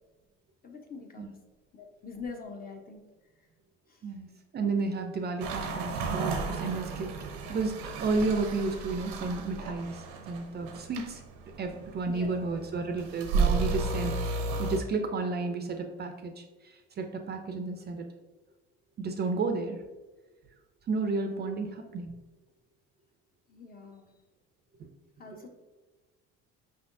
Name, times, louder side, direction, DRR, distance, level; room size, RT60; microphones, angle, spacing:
voice 1, 0.6-1.3 1.7-3.0 3.9-4.0 12.1-12.6 23.5-24.1 25.2-25.5, left 4 dB, 30° left, 3 dB, 0.8 m, -44 dB
voice 2, 4.0-11.2 11.6-18.1 19.0-19.8 20.9-22.1 24.8-24.9, right 3 dB, 35° right, 5 dB, 0.4 m, -32 dB
sound 1, 5.4-14.8, right 4 dB, 85° right, 0.7 m, -33 dB
5.1 x 3.4 x 2.6 m, 1.2 s
supercardioid pair, 90°, 30 cm